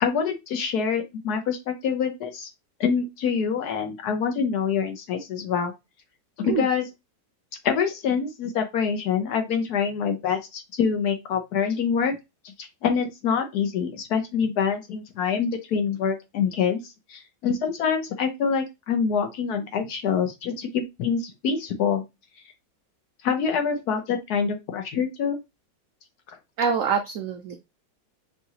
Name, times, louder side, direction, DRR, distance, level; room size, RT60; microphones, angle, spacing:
voice 1, 0.0-2.5 2.8-5.7 6.4-6.9 7.6-12.2 12.4-16.8 17.1-22.0 23.2-25.4, left 6 dB, 65° left, 5 dB, 1.2 m, -25 dB
voice 2, 26.6-27.6, right 6 dB, 90° right, 6 dB, 0.7 m, -25 dB
5.6 x 2.5 x 2.8 m, 0.22 s
omnidirectional pair, 2.0 m